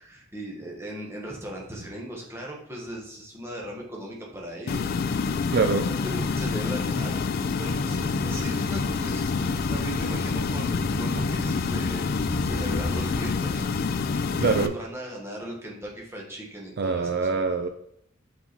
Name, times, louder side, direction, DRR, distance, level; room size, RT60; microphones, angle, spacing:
voice 1, 0.0-5.3 6.1-7.3 7.6-13.7 14.6-17.4, right 1 dB, 15° right, -2 dB, 1.3 m, -38 dB
sound 1, 4.7-14.7, left 4 dB, 50° left, 0.4 m, -27 dB
voice 2, 5.5-5.9 14.4-14.7 16.8-17.7, right 4 dB, 55° right, 8 dB, 0.4 m, -24 dB
sound 2, 7.7-13.3, equal, 85° right, 1.7 m, -36 dB
5.9 x 4.1 x 4.4 m, 0.71 s
head